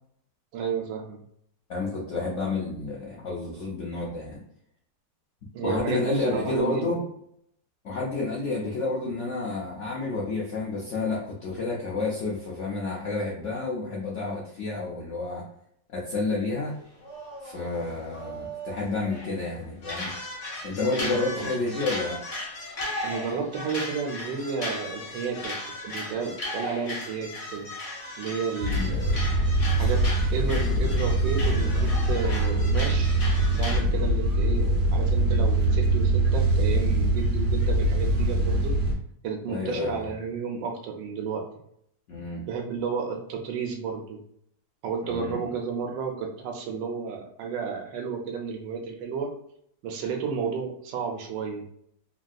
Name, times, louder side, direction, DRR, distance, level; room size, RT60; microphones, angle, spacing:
voice 1, 0.5-1.2 5.5-6.9 20.9-21.5 23.0-25.6 25.8-27.7 28.2-29.2 29.8-33.2 33.6-38.8 39.2-41.5 42.5-44.2 44.8-49.3 49.8-51.6, right 6 dB, 80° right, 2 dB, 1.3 m, -32 dB
voice 2, 1.7-4.4 5.6-7.0 7.8-15.5 15.9-16.8 17.4-20.1 20.6-22.2 28.8-29.0 39.5-40.1 42.1-42.4 45.0-45.5, left 3 dB, 65° left, -5 dB, 0.7 m, -30 dB
sound 1, 16.8-19.4 19.8-33.8, left 1 dB, 30° left, 0.6 m, -36 dB
sound 2, 28.6-38.9, right 1 dB, 55° right, 1.0 m, -23 dB
3.4 x 2.6 x 2.3 m, 0.70 s
omnidirectional pair, 1.9 m